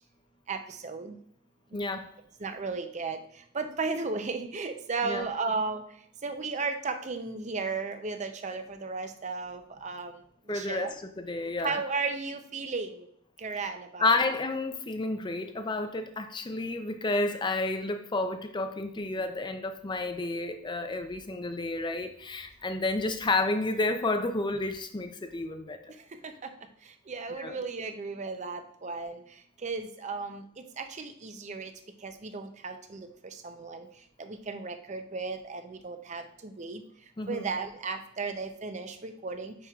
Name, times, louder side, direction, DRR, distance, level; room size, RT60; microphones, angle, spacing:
voice 1, 0.5-1.2 2.4-5.8 6.2-10.2 10.5-10.9 11.6-13.1 13.4-14.2 26.2-26.5 26.8-29.2 29.6-31.7 32.0-33.9 34.2-36.8 37.3-39.6, right 4 dB, 35° right, 7 dB, 0.5 m, -35 dB
voice 2, 1.7-2.1 5.0-5.3 10.5-11.8 14.0-25.8 27.4-27.6 37.2-37.5, left 2 dB, 20° left, 7 dB, 0.5 m, -30 dB
9.2 x 4.6 x 2.4 m, 0.69 s
head